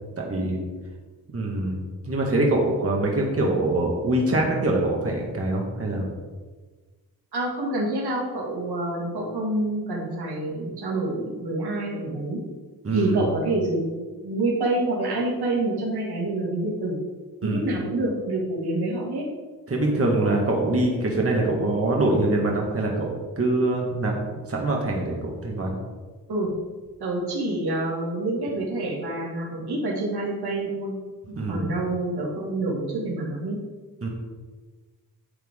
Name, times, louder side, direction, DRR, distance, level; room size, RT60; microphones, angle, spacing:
voice 1, 0.2-0.6 1.3-6.1 12.8-13.3 17.4-17.7 19.7-25.8 31.3-31.7 34.0-34.1, right 2 dB, 35° right, -1 dB, 1.8 m, -24 dB
voice 2, 7.3-12.4 12.9-13.9 14.2-17.0 17.4-19.3 26.3-26.5 27.0-30.9 31.3-33.6, right 2 dB, 85° right, -2 dB, 2.4 m, -27 dB
10.5 x 7.4 x 3.8 m, 1.3 s
wide cardioid pair, 110°, 38 cm